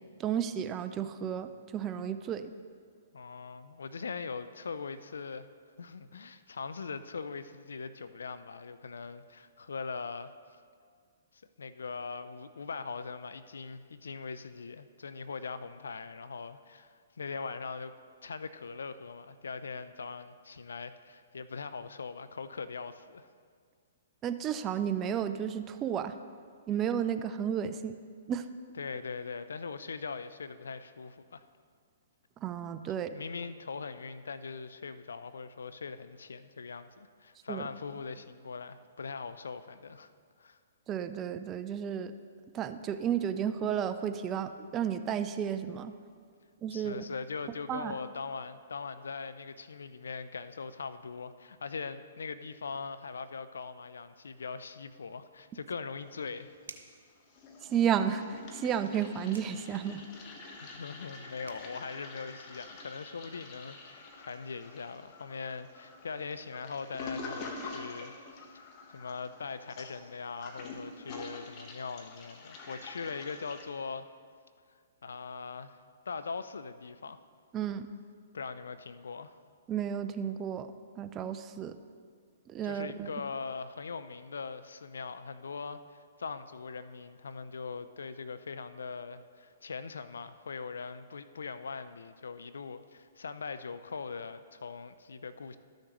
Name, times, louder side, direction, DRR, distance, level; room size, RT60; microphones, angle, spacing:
voice 1, 0.2-2.5 24.2-26.1 26.7-27.9 28.3-28.4 32.4-33.1 37.5-37.6 40.9-42.1 42.5-45.9 46.6-47.0 47.7-47.9 57.7-60.0 77.5-77.9 79.7-80.7 81.0-81.7 82.5-83.1, right 8 dB, 25° right, 10 dB, 0.4 m, -32 dB
voice 2, 3.1-5.5 5.8-10.3 11.3-17.9 18.2-23.3 28.8-31.4 33.1-40.1 40.4-40.6 46.7-56.5 60.6-68.1 68.9-74.1 75.0-75.8 76.1-77.2 78.3-79.4 82.6-95.6, left 5 dB, 75° left, 12 dB, 0.4 m, -41 dB
Toilet flush, 56.0-56.9 57.2-73.6, left 3 dB, 35° left, 1.2 m, -46 dB
sound 1, 56.7-57.1 59.3-59.6 61.1-61.2 61.5-61.7, right 4 dB, 80° right, 0.7 m, -49 dB
13.0 x 6.4 x 3.1 m, 2.1 s
hypercardioid pair, 125°, 0 cm